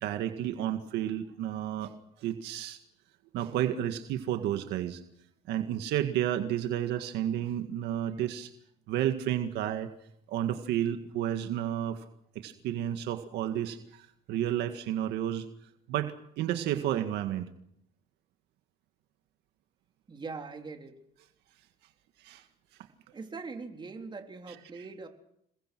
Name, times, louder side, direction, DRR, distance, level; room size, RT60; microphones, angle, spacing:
voice 1, 0.0-1.9 2.2-2.8 3.3-5.0 5.5-8.5 8.9-9.9 10.3-12.0 12.4-15.5 15.9-17.5 22.2-22.4, right 11 dB, 85° right, 7 dB, 1.9 m, -31 dB
voice 2, 20.1-21.0 23.1-25.1, right 4 dB, 25° right, 3 dB, 3.9 m, -41 dB
28.0 x 22.0 x 6.2 m, 0.75 s
cardioid pair, 110°, 17 cm